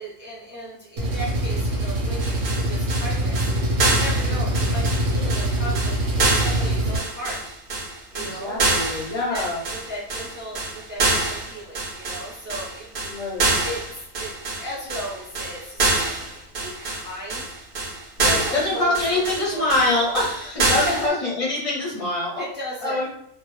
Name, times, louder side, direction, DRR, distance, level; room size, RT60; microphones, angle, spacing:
voice 1, 0.0-7.5 8.1-8.7 9.1-13.3 13.6-15.9 16.6-17.6 18.4-18.9 19.2-20.1 20.8-21.1 22.4-23.1, equal, 15° right, -6 dB, 0.5 m, -36 dB
Engine, 1.0-7.0, right 1 dB, 85° right, 1.0 m, -24 dB
sound 1, 2.2-21.1, right 2 dB, 60° right, 0.6 m, -26 dB
voice 2, 8.2-9.6 13.0-13.5 18.2-22.4 22.8-23.1, left 2 dB, 40° left, -6 dB, 0.6 m, -24 dB
2.1 x 2.0 x 3.0 m, 0.72 s
omnidirectional pair, 1.3 m